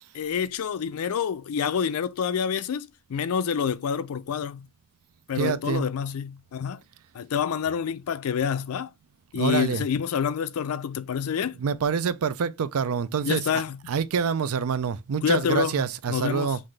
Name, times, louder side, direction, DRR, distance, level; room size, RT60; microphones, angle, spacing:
voice 1, 0.1-4.7 5.3-6.8 7.1-8.9 9.3-11.6 13.2-13.8 15.2-16.6, left 7 dB, 90° left, 0.4 m, -27 dB
voice 2, 5.4-5.9 9.3-9.8 11.6-16.6, right 6 dB, 90° right, 0.5 m, -26 dB
5.7 x 2.5 x 3.2 m
head